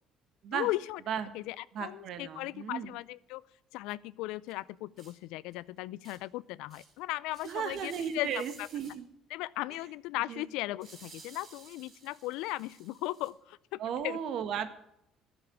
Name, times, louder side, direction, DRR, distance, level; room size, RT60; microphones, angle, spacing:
voice 1, 0.5-1.0 1.3-3.4 3.7-8.7 9.3-14.2, left 18 dB, 80° left, 21 dB, 0.4 m, -37 dB
voice 2, 1.7-2.9 7.4-9.1 10.3-10.5 13.8-14.8, right 8 dB, 65° right, 11 dB, 1.6 m, -35 dB
sound 1, 4.5-4.6 5.0-5.1 5.5-5.6 6.0-6.2 6.7-7.0 7.3-9.0 10.8-13.3, right 4 dB, 50° right, 4.5 m, -55 dB
13.0 x 7.1 x 9.3 m, 0.79 s
supercardioid pair, 85°, 0 cm